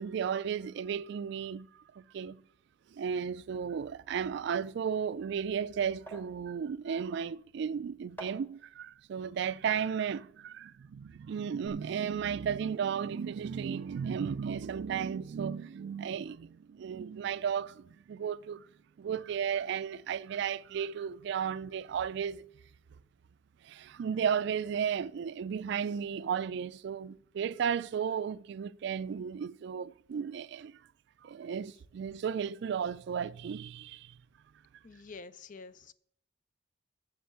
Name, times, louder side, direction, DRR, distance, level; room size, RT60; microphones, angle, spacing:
voice 1, 0.0-1.7 1.9-2.4 2.9-18.7 19.0-22.4 23.6-30.8 31.2-34.2, right 7 dB, 65° right, 0.3 m, -34 dB
sound 1, 5.9-11.1 11.4-11.7, right 1 dB, 10° left, 1.6 m, -53 dB
voice 2, 34.8-35.9, left 4 dB, 45° left, 0.5 m, -48 dB
7.7 x 7.3 x 6.7 m
head